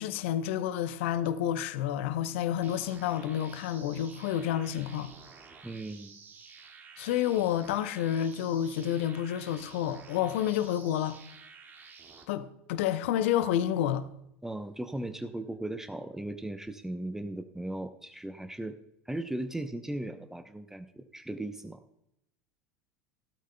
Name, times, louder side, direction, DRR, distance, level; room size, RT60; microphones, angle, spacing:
voice 1, 0.0-5.1 7.0-11.2 12.3-14.1, left 10 dB, 60° left, 0.8 m, -29 dB
sound 1, 2.6-12.2, right 5 dB, 25° right, 2.0 m, -52 dB
voice 2, 5.6-6.2 14.4-18.8 19.1-21.8, right 1 dB, 5° right, 0.7 m, -37 dB
16.5 x 12.5 x 2.2 m
figure-of-eight pair, 75°, 8 cm